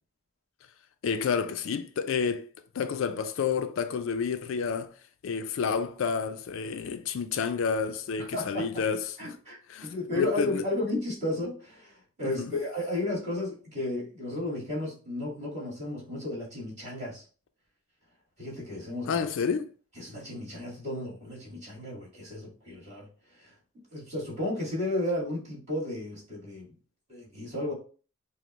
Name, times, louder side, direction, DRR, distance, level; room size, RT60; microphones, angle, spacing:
voice 1, 1.0-2.5 2.7-4.9 5.2-9.3 9.7-10.6 12.2-12.5 19.0-19.7, left 6 dB, 65° left, 0.4 m, -30 dB
voice 2, 8.3-8.7 9.2-17.2 18.4-19.2 20.0-23.1 23.3-23.5 23.9-26.7 27.1-27.7, left 1 dB, 30° right, 1.9 m, -33 dB
5.0 x 2.0 x 3.0 m
head